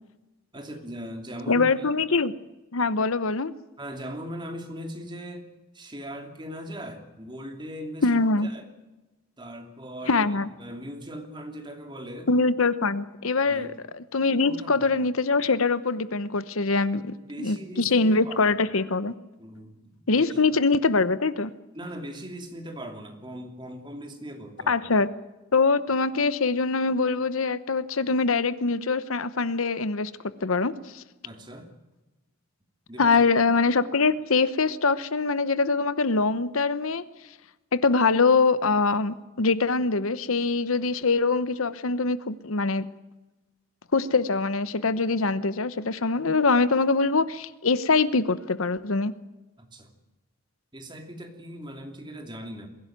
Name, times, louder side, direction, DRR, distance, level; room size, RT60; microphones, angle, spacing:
voice 1, 0.5-1.9 3.8-5.5 5.7-8.1 8.4-8.7 9.4-10.2 10.6-12.3 13.4-13.8 14.4-14.9 17.2-18.6 19.4-20.4 21.7-24.8 31.2-31.7 32.9-33.3 49.6-49.9 50.7-52.7, equal, 20° right, 4 dB, 2.8 m, -39 dB
voice 2, 1.5-2.3 2.7-3.5 8.0-8.5 10.1-10.5 12.3-19.1 20.1-21.5 24.7-25.1 25.5-30.1 30.4-31.0 33.0-37.0 37.7-42.8 43.9-49.1, left 4 dB, 75° left, 15 dB, 0.9 m, -23 dB
22.5 x 16.0 x 9.3 m, 1.1 s
head